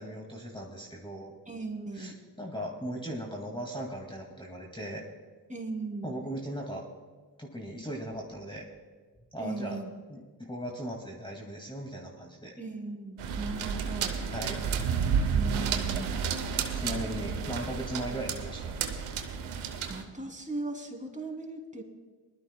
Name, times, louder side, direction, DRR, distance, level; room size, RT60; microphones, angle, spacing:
voice 1, 0.0-1.3 1.9-5.0 6.0-6.9 7.4-8.7 9.3-9.8 10.1-12.5 14.3-14.6 16.7-18.8, equal, 10° left, -1 dB, 2.3 m, -38 dB
voice 2, 1.5-2.2 5.5-6.2 9.4-9.9 12.6-14.2 15.3-16.2 19.9-21.8, right 3 dB, 15° right, 1 dB, 3.0 m, -38 dB
sound 1, 13.2-20.0, right 6 dB, 85° right, 1.0 m, -31 dB
21.0 x 12.5 x 2.3 m, 1.4 s
supercardioid pair, 40°, 47 cm